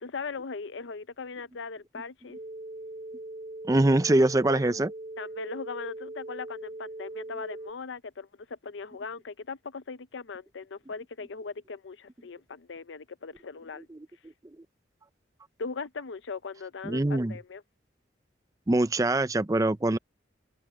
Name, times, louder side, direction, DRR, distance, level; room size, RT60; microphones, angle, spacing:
voice 1, 0.0-2.4 4.5-4.8 5.2-13.9 15.6-17.6, left 4 dB, 80° left, 0.6 m, -39 dB
sound 1, 2.3-7.7, right 1 dB, 40° right, 0.9 m, -41 dB
voice 2, 3.7-4.9 13.9-14.0 16.8-17.4 18.7-20.0, right 2 dB, 20° right, 0.5 m, -23 dB
head